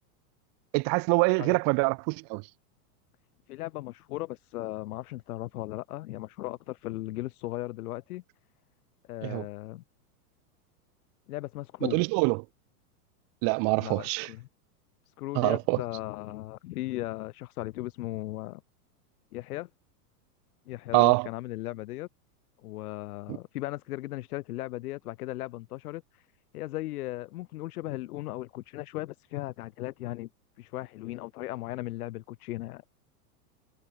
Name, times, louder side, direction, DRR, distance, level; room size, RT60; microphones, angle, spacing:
voice 1, 0.7-2.4 9.2-9.4 11.8-12.4 13.4-14.3 15.3-15.8 20.9-21.3 23.3-23.4, right 37 dB, 45° right, 1.5 m, -25 dB
voice 2, 3.5-8.2 9.1-9.8 11.3-12.0 13.7-14.5 15.1-18.6 19.3-19.7 20.7-22.1 22.6-26.3 26.5-30.3 30.6-32.8, left 17 dB, 70° left, 3.1 m, -37 dB
supercardioid pair, 135°, 47 cm